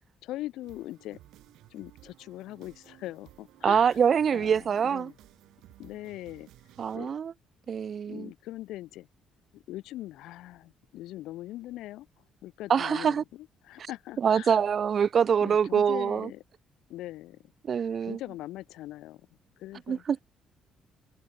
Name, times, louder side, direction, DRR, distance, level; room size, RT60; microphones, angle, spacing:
voice 1, 0.2-1.2 1.7-4.0 4.3-5.1 5.8-6.5 6.9-7.1 8.1-9.1 9.5-12.1 12.4-14.6 15.4-16.4 16.9-17.4 18.0-19.2 19.6-20.0, left 15 dB, 90° left, 0.8 m, -41 dB
sound 1, 0.6-7.0, right 15 dB, 85° right, 3.0 m, -56 dB
voice 2, 3.6-5.1 6.8-7.3 7.7-8.3 12.7-13.2 13.8-13.9 14.2-16.3 17.6-18.2 19.9-20.2, right 7 dB, 40° right, 0.3 m, -25 dB
cardioid pair, 135°, 0 cm